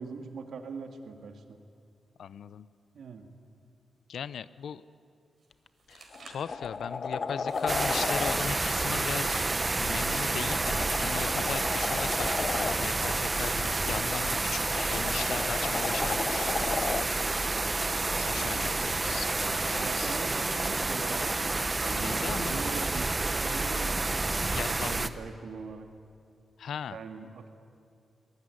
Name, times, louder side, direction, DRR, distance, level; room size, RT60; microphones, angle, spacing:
voice 1, 0.0-1.6 2.9-3.3 18.3-19.0 19.8-21.4 21.8-24.0 24.7-25.9 26.9-27.5, right 5 dB, 70° right, 6 dB, 2.3 m, -42 dB
voice 2, 2.2-2.7 4.1-4.8 5.9-9.4 9.7-16.5 18.1-20.1 22.0-22.7 24.5-25.1 26.6-27.0, left 8 dB, 80° left, 17 dB, 0.7 m, -38 dB
sound 1, 5.4-5.5 5.8-6.5 7.4-8.1 8.9-9.6 10.6-11.1 11.9-12.7 13.5-14.0 14.7-15.4 16.2-16.8 17.6-18.1 18.7-19.5 20.2-20.7 21.5-22.1 23.5-23.6, right 4 dB, 50° right, 4.2 m, -50 dB
sound 2, 5.5-5.7 6.1-8.4 10.0-12.8 14.3-17.1 19.4-19.5, left 5 dB, 45° left, 0.9 m, -34 dB
sound 3, 7.7-25.1, right 3 dB, 25° right, 0.9 m, -29 dB
23.5 x 20.0 x 9.8 m, 2.4 s
wide cardioid pair, 130°, 0 cm